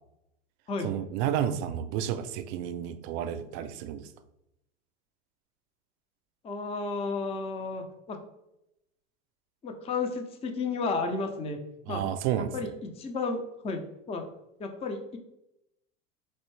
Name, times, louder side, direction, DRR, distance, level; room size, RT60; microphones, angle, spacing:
voice 1, 0.8-4.1 11.9-12.7, right 10 dB, 60° right, 11 dB, 0.5 m, -31 dB
voice 2, 6.4-8.2 9.6-11.6 11.9-12.0 12.4-13.8 14.1-14.2 14.6-15.2, left 4 dB, 15° left, 5 dB, 0.4 m, -32 dB
4.3 x 2.6 x 3.1 m, 0.86 s
supercardioid pair, 115°, 38 cm